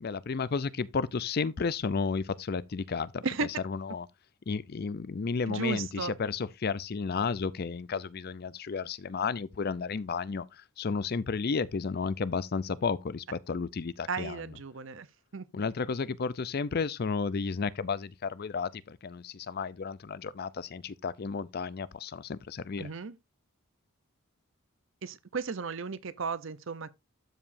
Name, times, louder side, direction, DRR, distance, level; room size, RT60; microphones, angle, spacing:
voice 1, 0.0-3.2 3.6-4.1 4.5-10.5 10.8-14.4 15.5-22.9, left 5 dB, 45° left, 0.4 m, -32 dB
voice 2, 5.5-6.2 14.1-15.1 15.3-15.6 22.8-23.2 25.0-26.9, right 4 dB, 60° right, 0.7 m, -34 dB
12.5 x 4.9 x 2.6 m
head